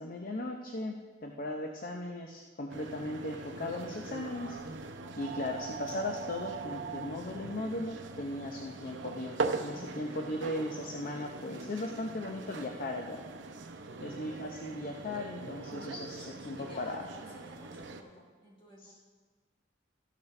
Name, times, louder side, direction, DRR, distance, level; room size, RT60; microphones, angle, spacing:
voice 1, 0.0-4.6 5.2-13.2 14.0-17.0 18.8-18.9, left 1 dB, 50° left, 2 dB, 0.7 m, -37 dB
sound 1, 2.7-18.0, right 3 dB, 75° right, 0.8 m, -41 dB
voice 2, 14.1-14.5 16.5-18.9, right 1 dB, 30° left, -3 dB, 3.6 m, -53 dB
13.5 x 11.5 x 3.3 m, 1.4 s
head